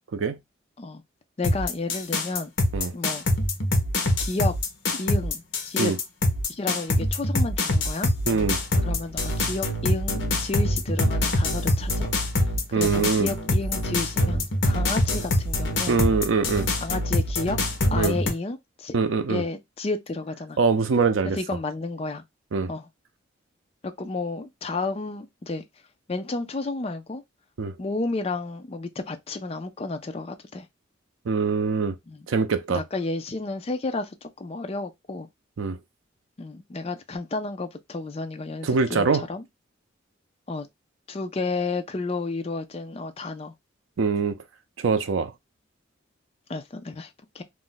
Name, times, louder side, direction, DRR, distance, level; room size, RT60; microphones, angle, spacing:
sound 1, 1.4-18.3, left 1 dB, 70° left, 0.8 m, -24 dB
voice 1, 1.4-2.5 2.9-3.2 4.2-4.5 4.9-5.9 6.5-8.1 8.8-12.1 12.7-16.0 16.8-17.6 17.9-19.0 19.3-20.6 21.3-22.2 22.7-22.9 23.8-25.7 26.1-27.2 27.8-30.7 32.1-32.3 32.7-35.3 36.4-39.4 40.5-40.7 41.1-43.5 46.5-47.4, left 3 dB, 30° left, 0.4 m, -31 dB
voice 2, 8.3-8.6 12.7-13.3 15.9-16.7 18.0-18.2 18.9-19.4 20.6-21.4 22.5-22.7 27.6-27.8 31.3-32.0 32.3-32.8 35.6-35.8 38.6-39.2 44.0-44.4 44.8-45.3, right 5 dB, 80° right, 0.4 m, -23 dB
2.4 x 2.1 x 3.7 m
head